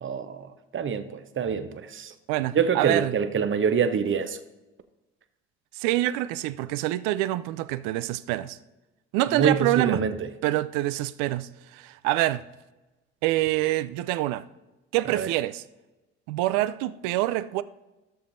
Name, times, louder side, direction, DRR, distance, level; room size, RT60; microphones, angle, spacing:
voice 1, 0.0-2.1 2.5-4.4 9.3-10.3 15.1-15.3, right 6 dB, 40° right, 0.8 m, -26 dB
voice 2, 2.3-3.2 5.8-8.6 9.1-10.0 10.4-12.4 13.2-14.4 14.9-15.6 16.3-17.6, right 16 dB, 75° right, 0.5 m, -26 dB
14.0 x 6.8 x 2.6 m
hypercardioid pair, 55°, 33 cm